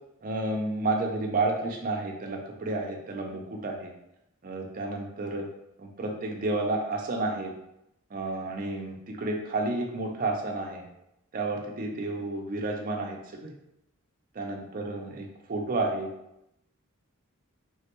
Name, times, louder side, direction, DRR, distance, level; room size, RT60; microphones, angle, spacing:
voice 1, 0.2-3.9 4.4-5.5 5.8-7.5 8.1-10.8 11.3-13.5 14.3-16.1, right 2 dB, 40° right, 1 dB, 0.5 m, -31 dB
3.2 x 2.2 x 2.9 m, 0.83 s
head